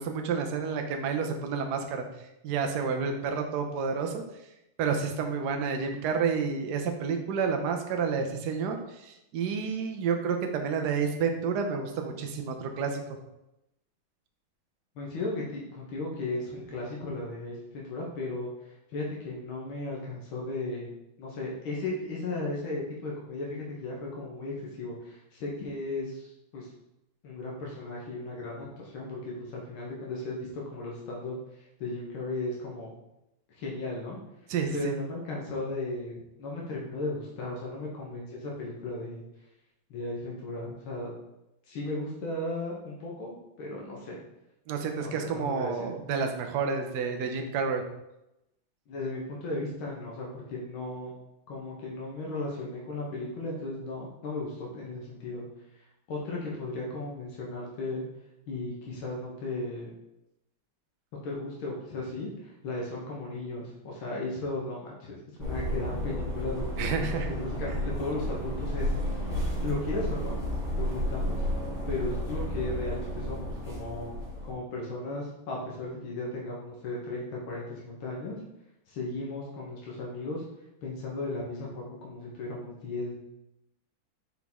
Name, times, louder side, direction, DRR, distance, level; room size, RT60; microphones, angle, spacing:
voice 1, 0.0-2.0 2.4-4.2 4.8-13.2 34.5-35.0 44.7-47.8 66.8-67.3, right 5 dB, 65° right, 4 dB, 1.2 m, -30 dB
voice 2, 15.0-20.9 21.2-26.7 27.2-31.4 31.8-32.9 33.5-34.2 34.7-39.2 39.9-41.1 41.7-44.2 45.0-45.9 48.9-51.1 51.5-55.5 56.1-58.1 58.5-59.9 61.2-67.0 67.3-68.9 69.2-69.4 69.6-70.4 70.7-71.4 71.9-74.1 74.4-78.4 78.9-80.4 80.8-83.2, left 2 dB, 90° left, -4 dB, 2.0 m, -36 dB
sound 1, 65.4-74.5, equal, 35° right, 2.6 m, -32 dB
6.1 x 4.7 x 3.6 m, 0.88 s
omnidirectional pair, 2.2 m